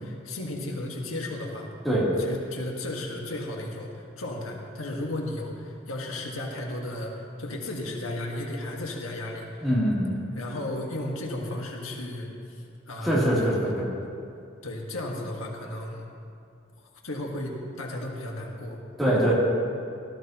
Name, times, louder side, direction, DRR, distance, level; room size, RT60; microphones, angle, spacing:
voice 1, 0.0-1.7 2.1-9.7 10.3-13.7 14.6-16.1 17.0-18.8, left 1 dB, 90° left, 0 dB, 1.7 m, -34 dB
voice 2, 9.6-10.2 13.0-13.8 19.0-19.3, equal, ahead, -8 dB, 3.0 m, -23 dB
17.0 x 13.5 x 3.0 m, 2.4 s
head